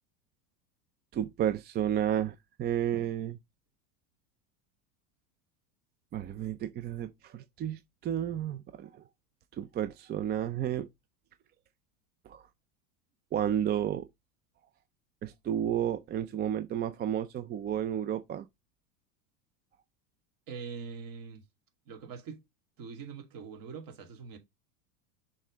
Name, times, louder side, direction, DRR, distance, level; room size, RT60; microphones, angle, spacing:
voice 1, 1.1-3.4 6.1-9.0 9.5-10.9 12.3-12.5 13.3-14.1 15.2-18.5, right 10 dB, 20° right, 0.4 m, -32 dB
voice 2, 20.5-21.4 21.9-22.4 22.8-24.4, right 5 dB, 45° right, 2.6 m, -43 dB
6.3 x 3.7 x 5.0 m
supercardioid pair, 110°, 47 cm